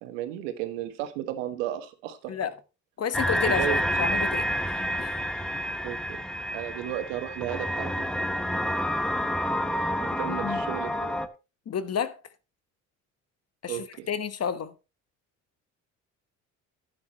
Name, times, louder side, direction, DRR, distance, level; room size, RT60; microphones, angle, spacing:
voice 1, 0.0-2.3 3.5-3.8 5.8-6.0 6.5-7.9 10.0-11.2 13.6-14.1, right 12 dB, 90° right, 1.4 m, -34 dB
voice 2, 3.0-5.1 10.1-10.6 11.7-12.2 13.6-14.7, left 7 dB, 45° left, 1.2 m, -31 dB
sound 1, 3.1-11.3, equal, ahead, 1.2 m, -28 dB
11.5 x 9.5 x 3.0 m
supercardioid pair, 70°, 36 cm